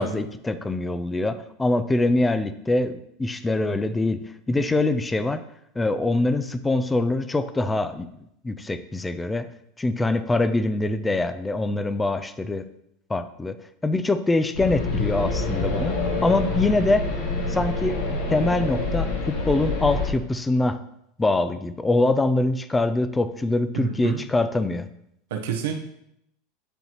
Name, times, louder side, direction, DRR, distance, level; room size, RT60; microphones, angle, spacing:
voice 1, 0.0-4.2 4.5-5.4 5.8-8.1 8.4-9.5 9.8-12.6 13.1-13.6 13.8-17.0 17.5-20.8 21.2-24.9, left 2 dB, 15° left, 12 dB, 0.5 m, -24 dB
sound 1, 14.5-20.1, left 3 dB, 75° left, 1.5 m, -26 dB
voice 2, 23.7-24.2 25.3-25.8, right 6 dB, 80° right, 3 dB, 0.9 m, -29 dB
10.0 x 4.0 x 3.0 m, 0.76 s
hypercardioid pair, 105°, 0 cm